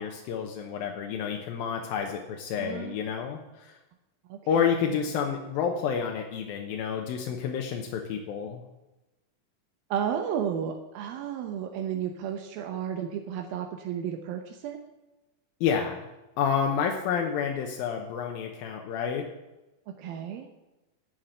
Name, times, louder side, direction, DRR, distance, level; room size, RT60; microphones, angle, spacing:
voice 1, 0.0-3.8 4.5-8.6 15.6-16.1 16.4-19.3, left 7 dB, 85° left, 2 dB, 2.8 m, -29 dB
voice 2, 2.6-2.9 4.3-4.4 9.9-14.8 20.0-20.5, right 8 dB, 80° right, 4 dB, 2.7 m, -32 dB
13.0 x 6.0 x 8.8 m, 1.0 s
omnidirectional pair, 4.2 m